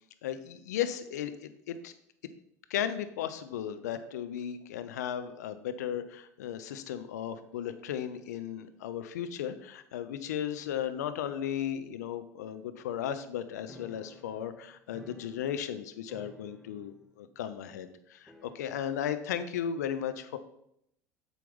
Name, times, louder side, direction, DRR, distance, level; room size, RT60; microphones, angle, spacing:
voice 1, 0.2-1.9 2.7-20.4, left 9 dB, 75° left, 11 dB, 0.6 m, -35 dB
sound 1, 13.7-15.8 16.1-17.1 17.3-17.4 18.3-19.1, left 1 dB, ahead, 1.2 m, -53 dB
7.8 x 4.7 x 5.3 m, 0.73 s
hypercardioid pair, 75°, 9 cm